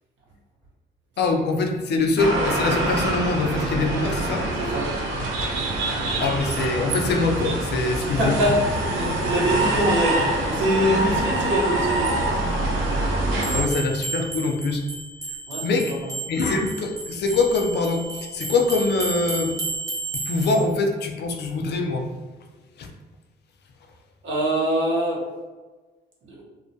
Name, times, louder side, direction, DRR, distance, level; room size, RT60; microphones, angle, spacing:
voice 1, 1.2-4.5 6.2-8.4 9.0-9.1 11.1-11.2 13.5-14.8 15.6-16.0 16.3-19.5 20.3-22.1 22.8-22.9, left 3 dB, 60° left, 3 dB, 0.4 m, -23 dB
sound 1, 2.2-13.6, right 1 dB, 85° right, 0.4 m, -25 dB
voice 2, 4.5-4.9 8.0-12.1 15.5-16.1 24.2-25.2 26.3-26.4, equal, 70° right, -4 dB, 0.8 m, -24 dB
sound 2, 13.4-20.6, right 3 dB, 15° right, 0.7 m, -32 dB
2.3 x 2.1 x 2.6 m, 1.3 s
cardioid pair, 90°, 20 cm